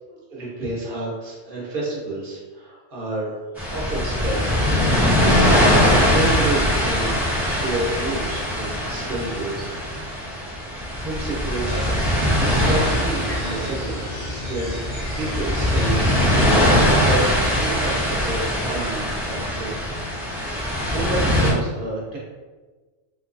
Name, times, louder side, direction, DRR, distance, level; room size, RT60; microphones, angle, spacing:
voice 1, 0.1-3.3 3.7-5.0 5.7-9.7 10.4-11.7 12.4-14.0 14.3-16.1 16.8-19.8 20.4-22.2, right 2 dB, 50° right, -5 dB, 1.2 m, -30 dB
sound 1, 3.6-21.5, equal, ahead, 0.8 m, -21 dB
sound 2, 11.7-16.7, left 1 dB, 30° left, 0.9 m, -31 dB
3.6 x 3.0 x 2.5 m, 1.3 s
omnidirectional pair, 1.2 m